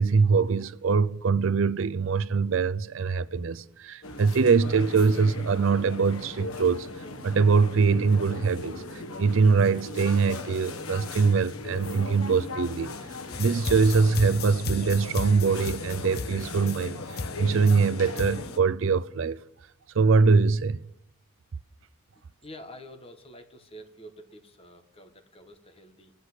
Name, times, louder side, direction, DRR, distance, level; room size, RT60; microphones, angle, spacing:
voice 1, 0.0-6.9 7.2-8.8 9.2-12.9 13.4-19.4 19.9-20.8, right 5 dB, 65° right, 0.5 m, -23 dB
sound 1, 4.0-18.6, left 2 dB, 90° left, 1.3 m, -38 dB
sound 2, 13.3-18.5, left 3 dB, 45° left, 0.8 m, -35 dB
voice 2, 22.4-26.1, equal, 25° left, 1.4 m, -47 dB
17.0 x 8.2 x 7.9 m
head